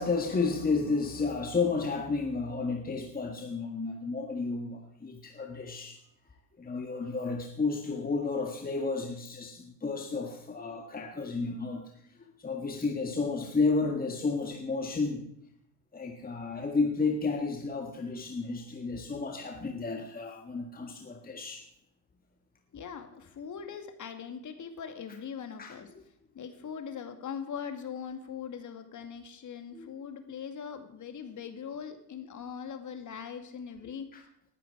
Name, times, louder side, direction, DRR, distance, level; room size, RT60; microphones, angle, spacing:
voice 1, 0.0-6.0 6.6-11.9 12.4-15.3 15.9-21.7 25.6-26.0 29.7-29.9 34.1-34.2, left 4 dB, 20° left, 3 dB, 1.6 m, -32 dB
voice 2, 22.7-25.9 26.3-34.1, left 7 dB, 40° left, 7 dB, 2.2 m, -41 dB
19.0 x 10.5 x 4.6 m, 0.73 s
hypercardioid pair, 60°, 47 cm